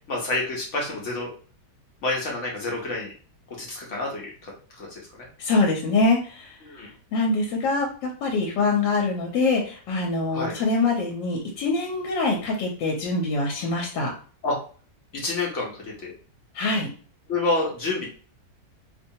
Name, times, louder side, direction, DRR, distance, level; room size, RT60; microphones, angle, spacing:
voice 1, 0.1-1.3 2.0-3.1 3.6-4.9 5.2-5.3 6.6-6.9 10.3-10.5 14.4-14.5 15.1-16.1 17.3-18.1, left 2 dB, 55° left, -2 dB, 0.9 m, -28 dB
voice 2, 5.4-14.1 16.5-16.9, left 3 dB, 85° left, 0 dB, 1.3 m, -24 dB
2.9 x 2.2 x 2.6 m, 0.41 s
omnidirectional pair, 1.9 m